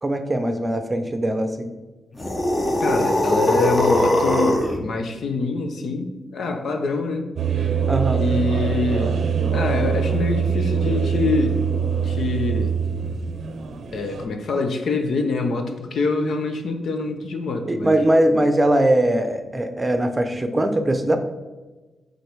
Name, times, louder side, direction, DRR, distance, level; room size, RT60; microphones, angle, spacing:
voice 1, 0.0-1.7 7.9-8.2 17.7-21.2, right 1 dB, 20° right, 7 dB, 0.6 m, -21 dB
sound 1, 2.2-4.8, left 1 dB, 25° left, 0.9 m, -20 dB
voice 2, 2.8-7.3 8.1-9.2 9.5-11.6 12.0-12.7 13.9-18.0, left 3 dB, 70° left, 5 dB, 0.7 m, -25 dB
sound 2, 7.4-14.3, right 7 dB, 65° right, 0.5 m, -23 dB
5.2 x 3.9 x 4.6 m, 1.2 s
cardioid pair, 85°, 0 cm